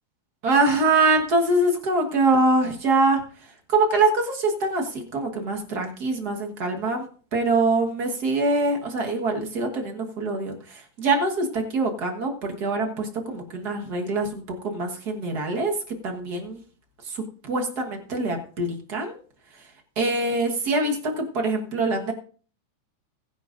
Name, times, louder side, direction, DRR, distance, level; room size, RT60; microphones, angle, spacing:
voice 1, 0.4-3.2 3.7-15.7 16.0-16.6 17.0-19.2 20.0-22.1, right 2 dB, 45° right, 2 dB, 1.3 m, -24 dB
20.5 x 10.5 x 2.5 m, 0.43 s
omnidirectional pair, 3.5 m